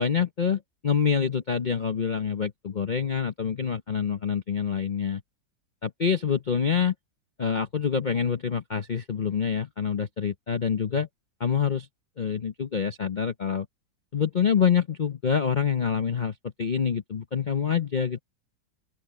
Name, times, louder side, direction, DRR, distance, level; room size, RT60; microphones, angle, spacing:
voice 1, 0.0-5.2 5.8-6.9 7.4-11.1 11.4-11.9 12.2-13.7 14.1-18.2, left 7 dB, 85° left, 0.4 m, -26 dB
open air
omnidirectional pair, 2.1 m